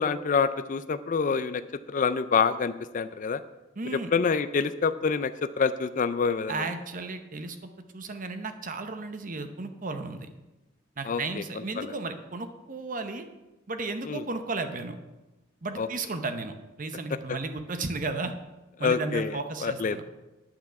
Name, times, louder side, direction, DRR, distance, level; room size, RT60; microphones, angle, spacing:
voice 1, 0.0-1.6 1.9-3.4 3.9-6.5 11.1-11.2 11.8-11.9 14.1-14.2 15.8-15.9 17.3-17.4 18.8-20.0, left 5 dB, 40° left, 11 dB, 0.4 m, -26 dB
voice 2, 3.8-4.1 6.5-7.6 7.9-10.3 11.0-13.3 13.7-15.0 15.6-18.3 18.8-20.0, right 3 dB, 40° right, 8 dB, 0.8 m, -34 dB
10.0 x 5.9 x 7.4 m, 1.1 s
head